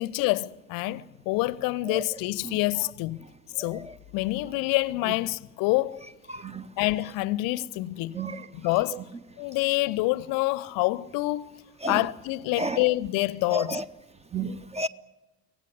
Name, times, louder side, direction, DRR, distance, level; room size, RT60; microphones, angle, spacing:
voice 1, 0.0-3.2 3.6-3.9 4.1-6.0 6.8-8.2 8.5-9.0 9.4-11.6 11.9-13.8, left 19 dB, 50° left, 0.7 m, -27 dB
voice 2, 6.3-6.7 8.1-8.4 11.8-12.0 12.6-12.8 13.5-13.8 14.3-14.9, right 2 dB, 15° right, 0.8 m, -31 dB
24.5 x 17.0 x 9.8 m
figure-of-eight pair, 50°, 43 cm